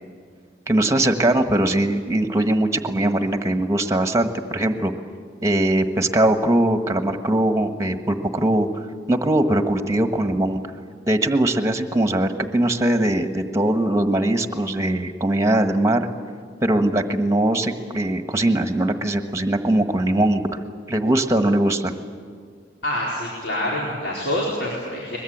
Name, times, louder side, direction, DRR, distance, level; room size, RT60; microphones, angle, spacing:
voice 1, 0.7-4.9 5.4-8.8 9.1-10.6 11.1-16.1 16.6-20.6 20.9-22.0, right 1 dB, 15° right, 7 dB, 1.3 m, -21 dB
voice 2, 22.8-25.2, left 1 dB, 80° left, -5 dB, 4.3 m, -26 dB
22.5 x 21.0 x 8.7 m, 2.1 s
head